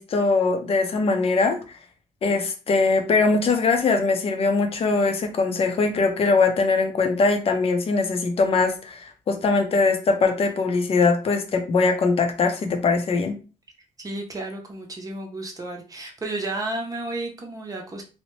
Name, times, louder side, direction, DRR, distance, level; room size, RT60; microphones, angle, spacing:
voice 1, 0.0-1.6 2.2-13.4, left 4 dB, 50° left, 4 dB, 0.6 m, -21 dB
voice 2, 14.0-18.0, right 2 dB, 25° right, 1 dB, 0.7 m, -32 dB
2.8 x 2.1 x 3.1 m, 0.34 s
cardioid pair, 105°, 13 cm